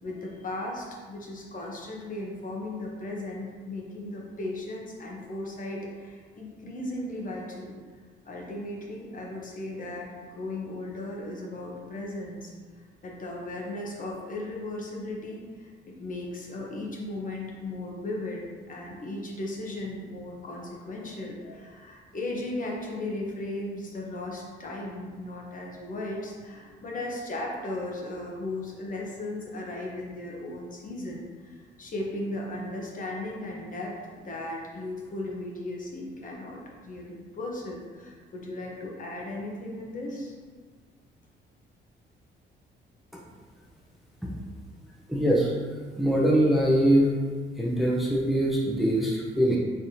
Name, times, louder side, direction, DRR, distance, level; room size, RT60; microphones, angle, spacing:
voice 1, 0.0-7.8 8.2-12.5 13.0-40.3, left 2 dB, 40° left, -2 dB, 0.9 m, -36 dB
voice 2, 45.1-45.5 46.0-47.1 47.6-49.6, right 1 dB, ahead, -4 dB, 0.7 m, -22 dB
4.2 x 3.3 x 2.7 m, 1.5 s
cardioid pair, 90°, 20 cm